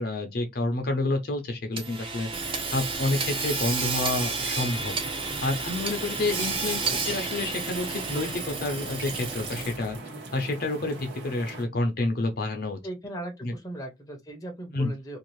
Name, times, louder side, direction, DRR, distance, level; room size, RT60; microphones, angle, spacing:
voice 1, 0.0-2.3 2.7-4.9 5.4-10.0 10.3-12.8 13.4-13.5 14.7-14.9, left 2 dB, 55° left, 0.7 m, -29 dB
Hammer / Sawing, 1.8-9.9, right 4 dB, 30° right, 0.6 m, -31 dB
sound 1, 4.7-11.6, right 2 dB, 70° right, 1.1 m, -41 dB
voice 2, 12.8-15.2, right 1 dB, 20° left, 0.7 m, -38 dB
2.6 x 2.4 x 3.0 m
head